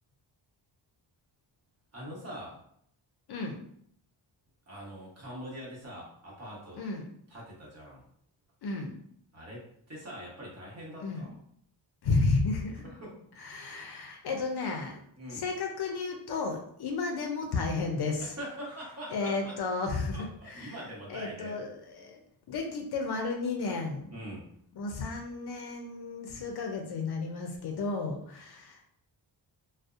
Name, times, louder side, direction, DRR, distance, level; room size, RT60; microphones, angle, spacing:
voice 1, 1.9-2.6 4.7-6.9 7.3-8.1 9.3-11.4 12.8-13.1 15.2-15.4 18.2-19.6 20.1-21.6 24.1-24.5, equal, 30° right, -5 dB, 1.0 m, -43 dB
voice 2, 8.6-9.0 11.0-11.3 12.0-12.8 13.4-15.0 15.3-18.2 19.1-20.7 21.1-22.2 22.5-24.1 24.8-28.8, left 3 dB, 55° left, 2 dB, 0.5 m, -32 dB
2.5 x 2.0 x 2.4 m, 0.67 s
cardioid pair, 95°, 48 cm